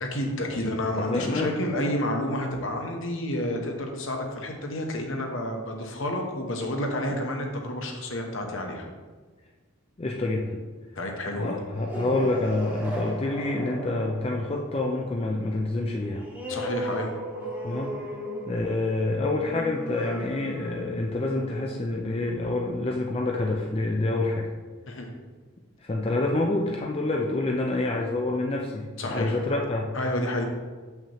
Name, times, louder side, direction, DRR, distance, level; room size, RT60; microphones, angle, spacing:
voice 1, 0.0-8.9 10.9-11.6 16.5-17.1 24.9-25.1 29.0-29.4 29.9-30.4, left 1 dB, 60° left, 2 dB, 1.0 m, -30 dB
voice 2, 1.0-1.5 10.0-10.6 11.4-16.3 17.6-17.9 18.5-24.5 25.8-29.9, left 2 dB, 25° left, 0 dB, 0.4 m, -27 dB
sound 1, 11.7-22.8, right 1 dB, 10° right, 1.3 m, -37 dB
7.2 x 5.7 x 3.0 m, 1.4 s
head